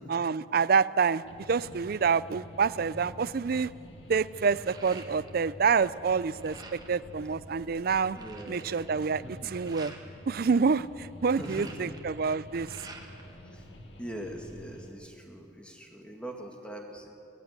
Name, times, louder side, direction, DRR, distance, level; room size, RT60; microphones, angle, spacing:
voice 1, 0.1-3.7 4.1-6.6 6.9-8.2 8.5-9.9 10.3-12.9, right 5 dB, 55° right, 18 dB, 0.4 m, -27 dB
sound 1, 1.2-14.9, left 1 dB, 75° left, 2.0 m, -48 dB
sound 2, 4.3-5.6 5.9-7.0 7.5-7.6 7.8-10.0 11.1-13.3 13.7-14.5, right 3 dB, 20° right, 1.6 m, -49 dB
voice 2, 8.1-8.7 9.1-9.5 11.2-11.9 13.4-13.7 14.0-17.1, right 1 dB, 5° left, 2 dB, 2.1 m, -42 dB
19.0 x 14.5 x 9.6 m, 2.7 s
head